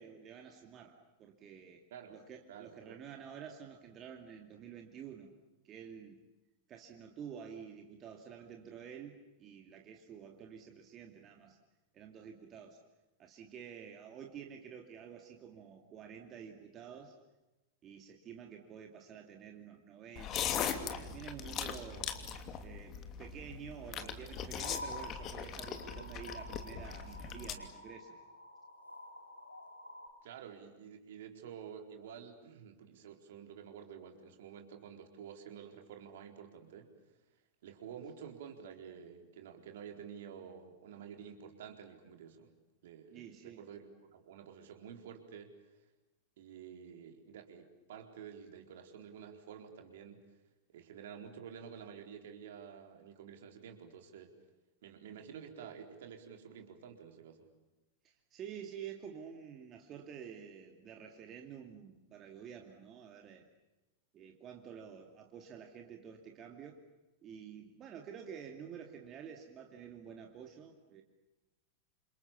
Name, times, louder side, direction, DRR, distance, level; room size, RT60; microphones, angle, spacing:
voice 1, 0.0-5.3 5.6-6.2 6.7-11.6 11.9-12.8 13.2-17.2 17.8-22.2 22.6-28.2 43.1-43.6 58.0-63.5 64.1-66.8 67.2-71.0, right 7 dB, 30° right, 3 dB, 2.7 m, -50 dB
voice 2, 1.9-3.0 30.2-36.9 37.6-42.5 42.8-45.5 46.4-50.2 50.7-54.3 54.8-57.5, right 7 dB, 55° right, 4 dB, 4.3 m, -50 dB
sound 1, 20.2-27.5, left 7 dB, 35° left, 2.8 m, -40 dB
sound 2, 24.6-30.1, left 1 dB, 85° left, 2.8 m, -49 dB
29.5 x 28.0 x 7.0 m, 1.0 s
figure-of-eight pair, 90°, 0 cm